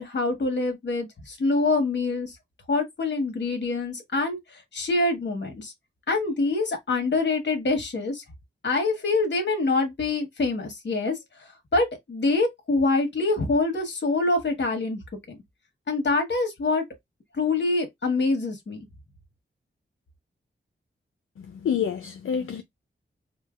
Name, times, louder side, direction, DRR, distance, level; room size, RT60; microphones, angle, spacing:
voice 1, 0.0-2.3 2.7-5.7 6.1-8.2 8.6-11.2 11.7-15.0 15.3-15.4 15.9-16.8 17.3-18.9, left 3 dB, 60° left, 1.3 m, -25 dB
voice 2, 21.4-22.6, left 8 dB, 80° left, 0.5 m, -28 dB
4.4 x 2.2 x 2.4 m
cardioid pair, 65°, 21 cm